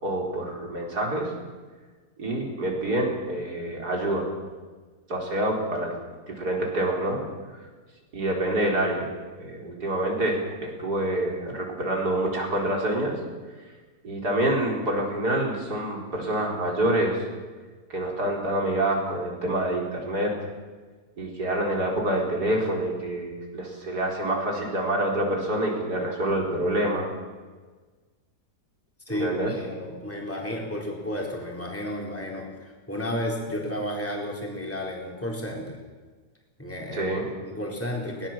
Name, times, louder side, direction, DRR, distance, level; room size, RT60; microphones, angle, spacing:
voice 1, 0.0-1.3 2.2-4.3 5.1-5.9 6.3-7.2 8.1-9.1 9.4-13.2 14.0-17.2 17.9-20.3 21.2-27.1 29.1-29.5 36.9-37.3, right 1 dB, 80° right, 0 dB, 4.9 m, -27 dB
voice 2, 29.1-35.8 36.6-38.3, equal, 10° left, -1 dB, 3.9 m, -32 dB
22.0 x 18.0 x 7.5 m, 1.4 s
omnidirectional pair, 1.7 m